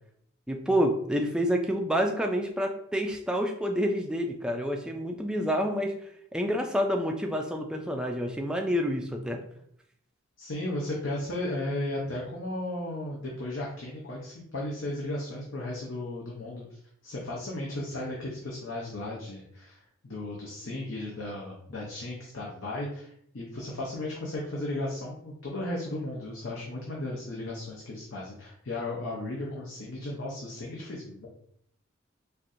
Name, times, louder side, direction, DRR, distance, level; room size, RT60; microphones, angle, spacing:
voice 1, 0.5-5.9 6.3-9.4, equal, 5° right, 2 dB, 0.4 m, -28 dB
voice 2, 10.4-16.8 17.0-31.3, left 1 dB, 65° left, -4 dB, 0.7 m, -35 dB
4.4 x 2.5 x 2.6 m, 0.69 s
head